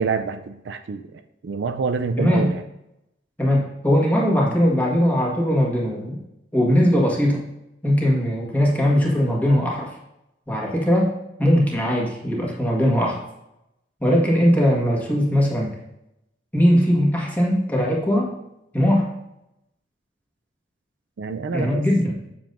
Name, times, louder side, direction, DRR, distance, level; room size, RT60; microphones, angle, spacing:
voice 1, 0.0-2.6 21.2-21.8, right 4 dB, 65° right, 8 dB, 0.4 m, -27 dB
voice 2, 2.2-2.5 3.4-6.2 6.5-7.4 7.8-9.9 10.5-11.1 11.4-13.2 14.0-15.7 16.5-18.3 18.7-19.1 21.5-22.1, equal, 10° left, -3 dB, 1.6 m, -20 dB
7.5 x 7.1 x 2.6 m, 0.86 s
head